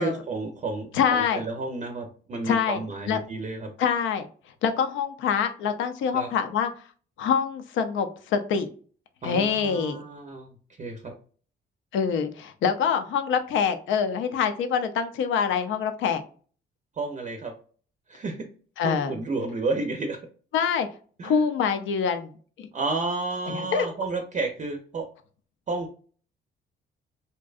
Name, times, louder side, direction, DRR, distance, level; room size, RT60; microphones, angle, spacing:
voice 1, 0.0-3.7 6.1-6.3 9.2-10.5 10.8-11.1 17.0-17.5 18.1-18.4 18.8-20.2 21.2-21.4 22.7-25.0 25.7-25.9, right 3 dB, 35° right, 4 dB, 0.5 m, -31 dB
voice 2, 0.9-1.4 2.4-2.8 3.1-3.2 3.8-4.3 4.6-6.7 7.2-8.7 9.2-10.0 11.9-16.2 18.8-19.2 20.5-20.9 21.2-22.3 22.6-22.7 23.5-23.9, left 6 dB, 75° left, 8 dB, 0.5 m, -25 dB
2.6 x 2.2 x 2.3 m, 0.42 s
cardioid pair, 90°, 20 cm